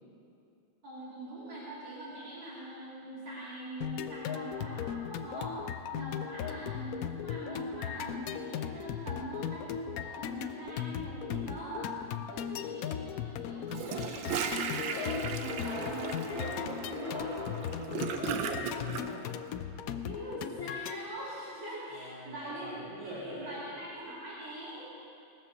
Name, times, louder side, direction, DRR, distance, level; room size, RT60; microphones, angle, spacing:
voice 1, 0.8-5.6 5.9-11.9 12.3-17.3 20.0-22.7 23.0-24.9, right 1 dB, 70° right, -9 dB, 3.5 m, -43 dB
sound 1, 3.8-21.0, left 9 dB, 85° left, 0.7 m, -37 dB
Gurgling / Toilet flush, 13.7-19.0, right 7 dB, 85° right, 1.6 m, -36 dB
sound 2, 14.9-18.4, equal, 15° right, 2.9 m, -40 dB
voice 2, 17.7-19.3 21.9-23.6, equal, 40° right, -9 dB, 4.0 m, -45 dB
18.5 x 6.9 x 7.0 m, 2.5 s
omnidirectional pair, 2.1 m